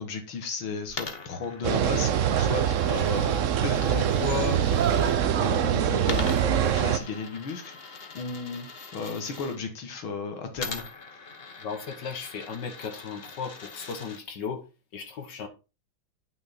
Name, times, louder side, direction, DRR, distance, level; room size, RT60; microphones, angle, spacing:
voice 1, 0.0-3.4 3.6-7.8 8.1-8.7 8.9-10.8, left 4 dB, 85° left, 2.4 m, -34 dB
Coin (dropping), 0.9-5.1 6.0-9.6 10.5-14.2, left 4 dB, 35° left, 1.1 m, -42 dB
sound 1, 1.6-7.0, right 9 dB, 75° right, 0.7 m, -24 dB
voice 2, 11.6-14.6 14.9-15.5, left 6 dB, 65° left, 1.9 m, -36 dB
9.3 x 6.0 x 4.4 m
omnidirectional pair, 2.2 m